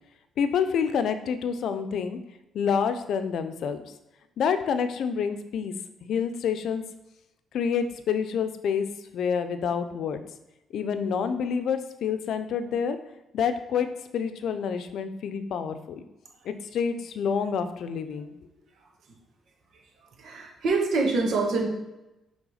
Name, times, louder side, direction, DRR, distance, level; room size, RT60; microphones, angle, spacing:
voice 1, 0.4-2.2 2.5-3.8 4.4-5.7 6.0-6.8 7.5-8.9 9.1-10.2 10.7-13.0 13.3-13.9 14.1-15.8 16.4-18.4, left 7 dB, 70° left, 10 dB, 0.6 m, -27 dB
voice 2, 20.2-21.7, right 3 dB, 70° right, 0 dB, 1.6 m, -25 dB
6.2 x 3.6 x 4.9 m, 0.97 s
cardioid pair, 90°, 0 cm